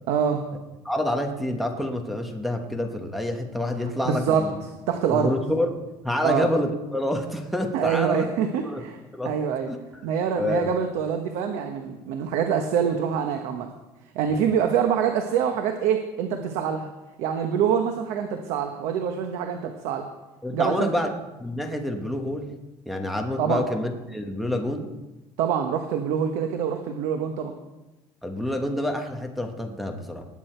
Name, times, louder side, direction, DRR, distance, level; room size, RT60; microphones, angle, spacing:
voice 1, 0.1-0.5 4.0-4.4 4.9-5.3 6.2-6.5 7.7-9.0 9.2-9.7 10.0-13.7 14.1-16.9 17.2-20.1 20.5-20.9 23.4-23.6 25.4-27.5, right 8 dB, 75° right, 5 dB, 1.2 m, -25 dB
voice 2, 0.8-4.6 5.1-5.7 6.0-8.2 8.6-9.3 9.7-9.8 10.4-10.7 14.3-14.4 20.4-21.1 21.4-22.5 22.9-24.9 28.2-30.2, left 1 dB, ahead, 1 dB, 1.1 m, -27 dB
20.0 x 8.6 x 4.5 m, 1.0 s
cardioid pair, 165°, 11 cm